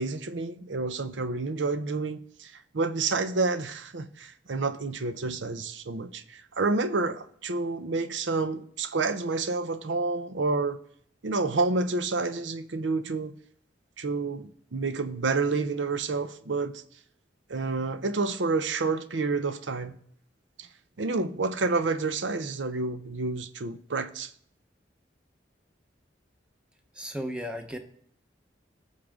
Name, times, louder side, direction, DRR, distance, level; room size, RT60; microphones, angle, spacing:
voice 1, 0.0-10.8 11.2-13.3 14.0-16.8 17.5-20.0 20.6-20.7 21.0-24.3, right 3 dB, 75° right, 0.7 m, -29 dB
voice 2, 26.9-27.8, equal, 5° right, 0.9 m, -34 dB
19.0 x 6.5 x 3.6 m
head